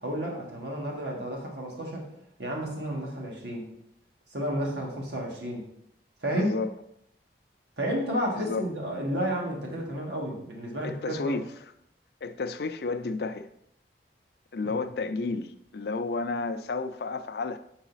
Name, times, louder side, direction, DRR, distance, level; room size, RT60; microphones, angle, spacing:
voice 1, 0.0-2.1 2.4-3.7 4.3-5.7 6.2-6.5 7.8-11.4 14.6-14.8, equal, 80° right, 1.7 m, -31 dB
voice 2, 6.3-6.7 8.4-8.6 10.8-11.7 12.2-13.5 14.5-17.6, left 3 dB, 65° left, 0.4 m, -31 dB
7.8 x 4.1 x 4.0 m
head